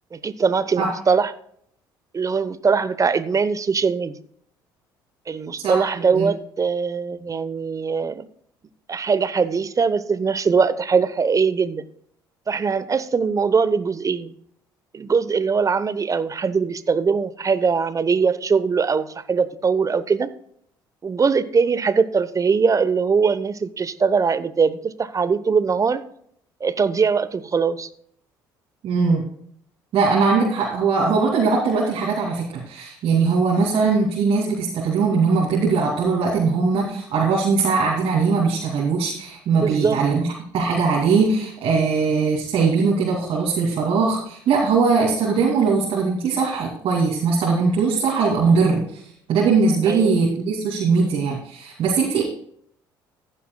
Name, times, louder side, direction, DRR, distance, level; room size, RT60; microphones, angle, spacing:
voice 1, 0.1-1.3 2.1-4.1 5.3-8.2 8.9-11.8 12.5-14.3 14.9-20.3 21.0-26.0 26.6-27.9 39.6-40.0 49.9-50.2, right 5 dB, 30° right, 14 dB, 0.9 m, -21 dB
voice 2, 5.6-6.3 28.8-29.2 29.9-49.0 49.3-52.2, right 4 dB, 55° right, -4 dB, 2.7 m, -20 dB
15.5 x 11.0 x 2.3 m, 0.65 s
hypercardioid pair, 60°, 11 cm